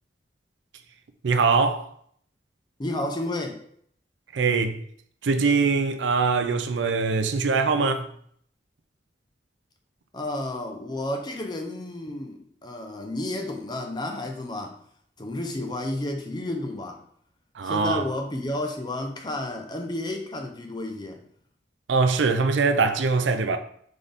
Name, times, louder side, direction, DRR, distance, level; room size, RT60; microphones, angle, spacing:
voice 1, 1.2-1.9 4.3-4.8 5.2-8.1 17.6-18.0 21.9-23.6, right 4 dB, 85° right, 0.5 m, -22 dB
voice 2, 2.8-3.6 10.1-14.8 15.2-17.0 17.6-21.2, left 1 dB, 25° left, 0.6 m, -31 dB
4.1 x 3.8 x 3.4 m
head